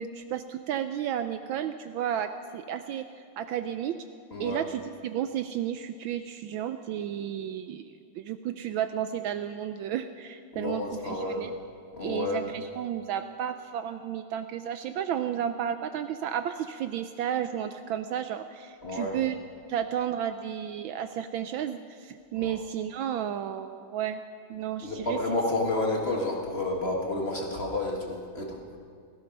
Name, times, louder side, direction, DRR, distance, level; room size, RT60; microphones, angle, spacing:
voice 1, 0.0-3.1 3.4-4.0 4.4-11.5 12.0-19.4 19.7-24.2 24.5-25.2, right 9 dB, 75° right, 9 dB, 1.2 m, -32 dB
voice 2, 4.3-4.6 10.5-11.4 11.9-12.4 18.8-19.2 22.4-22.6 24.8-28.6, left 2 dB, 30° left, -1 dB, 1.6 m, -30 dB
17.0 x 15.5 x 5.3 m, 2.2 s
omnidirectional pair, 2.4 m